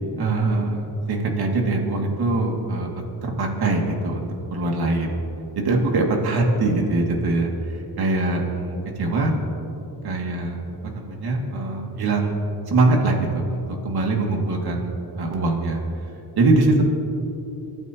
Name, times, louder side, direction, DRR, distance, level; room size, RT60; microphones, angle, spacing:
voice 1, 0.2-0.8 1.1-2.9 3.2-4.2 4.5-5.2 5.5-9.3 10.0-10.6 10.9-12.3 12.7-14.9 15.1-15.8 16.4-16.8, right 2 dB, 70° right, 0 dB, 2.5 m, -22 dB
29.0 x 14.5 x 3.0 m, 2.9 s
cardioid pair, 125°, 40 cm